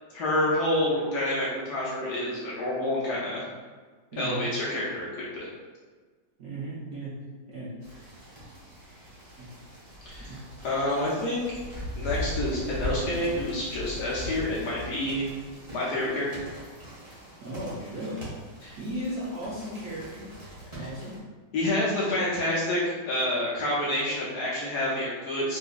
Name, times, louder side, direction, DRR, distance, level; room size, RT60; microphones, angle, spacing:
voice 1, 0.1-3.5 4.2-5.5 10.1-10.4 10.6-11.6 12.0-15.2 15.7-16.5 18.6-18.8 20.7-20.9 21.5-25.6, left 1 dB, 65° left, -6 dB, 1.1 m, -28 dB
voice 2, 4.1-4.4 6.4-7.1 7.5-7.7 9.4-9.5 10.3-10.4 17.4-18.2 18.8-20.3 20.7-21.1, right 1 dB, 65° right, -8 dB, 0.9 m, -35 dB
sound 1, 7.8-21.2, equal, 20° right, 0.9 m, -40 dB
3.8 x 2.6 x 2.4 m, 1.4 s
omnidirectional pair, 2.1 m